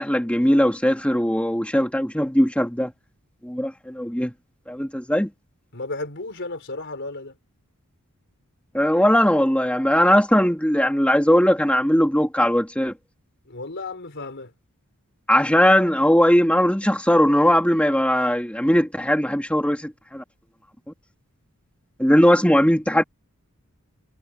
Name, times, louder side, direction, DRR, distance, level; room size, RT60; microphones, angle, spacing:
voice 1, 0.0-2.9 3.4-4.3 4.7-5.3 8.7-12.9 15.3-20.2 22.0-23.0, equal, 5° left, 2.8 m, -19 dB
voice 2, 5.7-7.4 13.5-14.5, left 2 dB, 55° left, 4.4 m, -33 dB
head